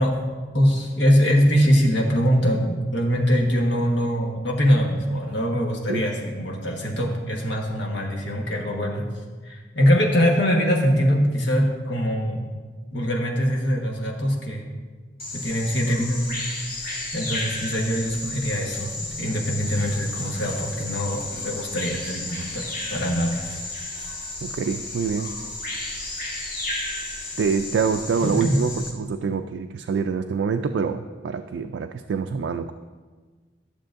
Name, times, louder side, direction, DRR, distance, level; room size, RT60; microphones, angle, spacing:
voice 1, 0.0-9.1 9.4-12.5 12.9-14.7 15.3-16.3 16.8-23.4 28.2-28.6, equal, 70° left, -1 dB, 1.4 m, -23 dB
Bird vocalization bird call bird song, 15.2-28.9, left 2 dB, 55° left, 1.6 m, -33 dB
voice 2, 24.4-25.4 27.4-32.7, right 6 dB, 75° right, 7 dB, 0.3 m, -26 dB
12.5 x 6.8 x 2.6 m, 1.4 s
head